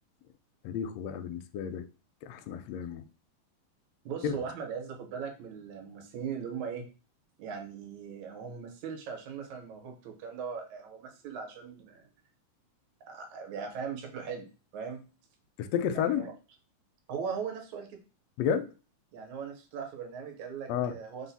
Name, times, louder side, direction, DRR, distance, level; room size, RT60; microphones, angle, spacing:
voice 1, 0.6-1.8 2.2-3.1 4.2-4.4 15.6-16.3 18.4-18.7 20.7-21.0, left 8 dB, 80° left, 1.4 m, -31 dB
voice 2, 4.1-6.9 7.4-12.1 13.1-14.5 14.7-15.0 16.0-16.3 17.1-18.0 19.1-21.3, right 6 dB, 75° right, 2.2 m, -39 dB
4.7 x 2.1 x 3.9 m
omnidirectional pair, 3.3 m